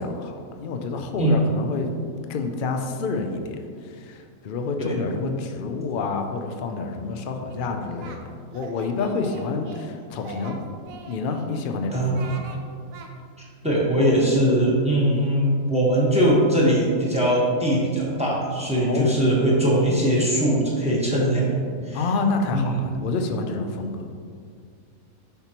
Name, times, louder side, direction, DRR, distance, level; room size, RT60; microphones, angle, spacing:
voice 1, 0.0-1.9 2.3-10.6 11.1-12.5 18.8-19.2 21.9-24.0, left 4 dB, 75° left, 5 dB, 0.4 m, -28 dB
voice 2, 4.8-5.1 11.9-12.3 13.6-21.6 21.8-22.1 22.5-22.8, right 1 dB, 5° right, -5 dB, 1.1 m, -21 dB
Singing, 7.5-8.2 8.5-9.9 10.2-11.5 11.9-12.6 12.9-13.1, right 4 dB, 75° right, 1.1 m, -42 dB
6.8 x 5.8 x 2.9 m, 2.3 s
omnidirectional pair, 1.5 m